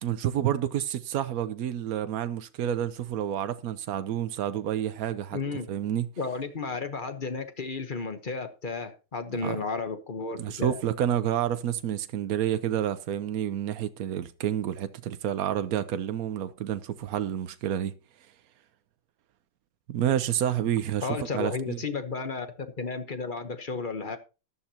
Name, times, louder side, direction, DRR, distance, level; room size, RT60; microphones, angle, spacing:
voice 1, 0.0-5.4 5.7-6.1 9.4-9.6 10.4-17.9 19.9-21.1 21.3-21.8, right 10 dB, 85° right, 0.7 m, -29 dB
voice 2, 5.3-5.7 6.2-10.8 21.0-24.2, left 4 dB, 40° left, 0.7 m, -33 dB
14.0 x 11.0 x 2.9 m
omnidirectional pair, 2.4 m